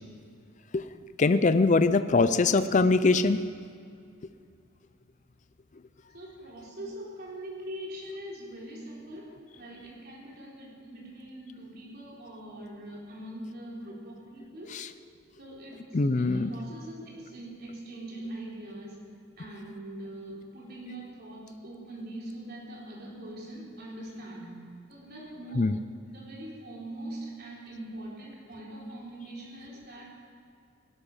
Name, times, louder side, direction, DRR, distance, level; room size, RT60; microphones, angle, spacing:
voice 1, 1.2-3.4 14.7-14.9 15.9-16.5 25.6-25.8, left 3 dB, 35° left, 12 dB, 0.4 m, -22 dB
voice 2, 6.1-14.9 15.4-25.7 26.0-30.1, right 1 dB, 50° right, -4 dB, 3.9 m, -42 dB
17.5 x 12.0 x 5.5 m, 2.3 s
head